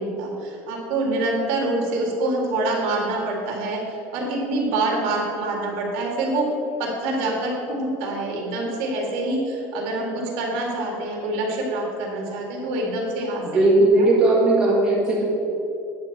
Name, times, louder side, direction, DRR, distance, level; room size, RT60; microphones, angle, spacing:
voice 1, 0.0-6.5 6.8-14.1, right 2 dB, 70° right, -1 dB, 2.0 m, -26 dB
voice 2, 13.4-15.2, right 2 dB, 10° right, -7 dB, 1.7 m, -17 dB
9.3 x 4.3 x 7.1 m, 2.7 s
cardioid pair, 180°, 8 cm